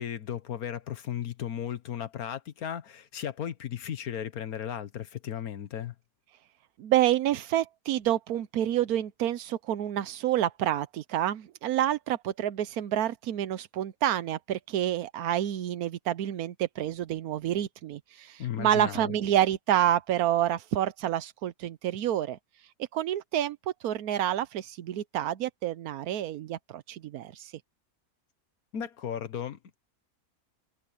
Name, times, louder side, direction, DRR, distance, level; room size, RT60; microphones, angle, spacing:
voice 1, 0.0-5.9 18.4-19.1 28.7-29.8, left 9 dB, 75° left, 1.6 m, -35 dB
voice 2, 6.8-22.4 22.9-27.5, right 11 dB, 90° right, 1.2 m, -28 dB
omnidirectional pair, 1.5 m